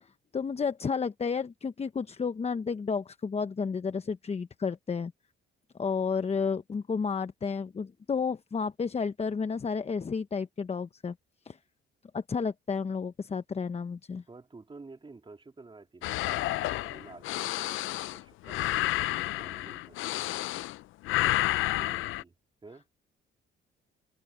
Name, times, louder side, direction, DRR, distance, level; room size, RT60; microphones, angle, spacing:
voice 1, 0.3-5.1 5.8-11.1 11.4-11.6 12.1-14.2, left 5 dB, 30° left, 0.9 m, -31 dB
voice 2, 14.3-20.6 21.2-22.3 22.6-22.9, right 3 dB, 25° right, 3.5 m, -51 dB
sound 1, 16.0-20.8 21.0-22.2, left 17 dB, 85° left, 0.5 m, -30 dB
cardioid pair, 90°, 20 cm